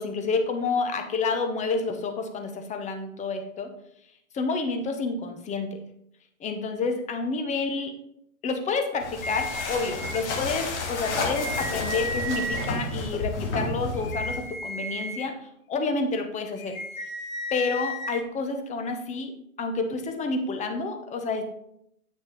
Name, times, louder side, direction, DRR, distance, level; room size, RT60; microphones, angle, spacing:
voice 1, 0.0-3.7 4.3-5.8 6.4-7.9 8.4-16.8 17.5-19.3 19.6-21.4, left 4 dB, 15° left, 5 dB, 1.0 m, -29 dB
sound 1, 9.0-14.6, left 3 dB, 55° left, 2.0 m, -31 dB
sound 2, 9.2-10.2 11.0-12.6 13.9-15.2 16.6-18.2, equal, 75° left, 1.8 m, -34 dB
8.9 x 6.3 x 3.2 m, 0.75 s
hypercardioid pair, 120°, 42 cm